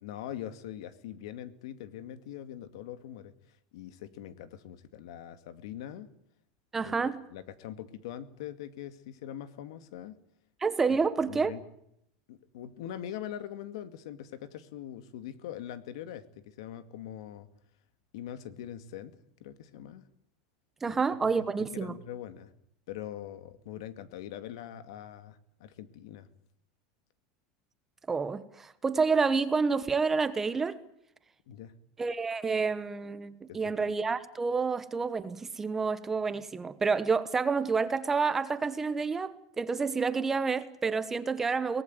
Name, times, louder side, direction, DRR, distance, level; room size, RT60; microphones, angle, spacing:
voice 1, 0.0-3.3 3.7-6.1 6.8-10.2 10.9-11.0 11.2-11.6 12.3-17.5 18.1-19.2 19.4-20.0 20.8-22.5 22.9-26.3 31.5-31.7 33.5-33.9, left 11 dB, 75° left, 12 dB, 2.2 m, -42 dB
voice 2, 6.7-7.2 10.6-11.5 20.8-21.9 28.1-30.8 32.0-41.8, right 4 dB, 10° right, 13 dB, 1.0 m, -29 dB
23.5 x 19.0 x 9.2 m, 0.75 s
supercardioid pair, 170°, 3 cm